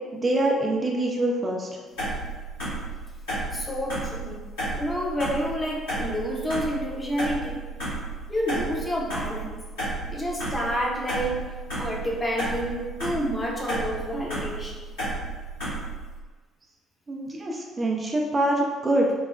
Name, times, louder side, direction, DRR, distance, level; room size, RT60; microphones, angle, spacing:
voice 1, 0.1-1.7 17.1-19.1, right 1 dB, 30° right, -1 dB, 0.3 m, -25 dB
sound 1, 2.0-16.1, right 2 dB, 75° left, 1.4 m, -32 dB
voice 2, 3.5-4.4 4.7-7.6 8.3-9.6 10.1-11.4 11.8-14.8, equal, 20° left, -2 dB, 0.7 m, -29 dB
3.0 x 2.0 x 2.4 m, 1.4 s
figure-of-eight pair, 45°, 0 cm